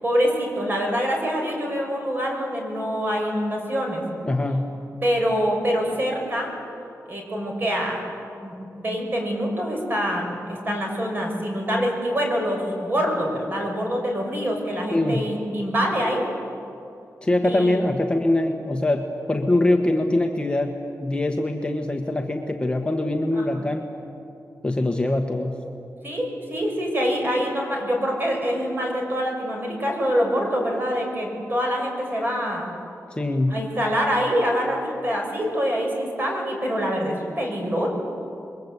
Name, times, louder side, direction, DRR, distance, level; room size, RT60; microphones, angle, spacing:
voice 1, 0.0-4.0 5.0-6.5 7.1-8.0 8.4-16.2 17.4-17.9 23.3-23.7 26.0-32.7 33.5-37.9, equal, 35° right, 0 dB, 6.0 m, -25 dB
voice 2, 4.2-4.7 14.9-15.3 17.2-23.8 24.6-25.6 33.2-33.6, left 1 dB, 15° left, 3 dB, 1.3 m, -23 dB
28.5 x 22.5 x 8.2 m, 2.7 s
wide cardioid pair, 165°, 6 cm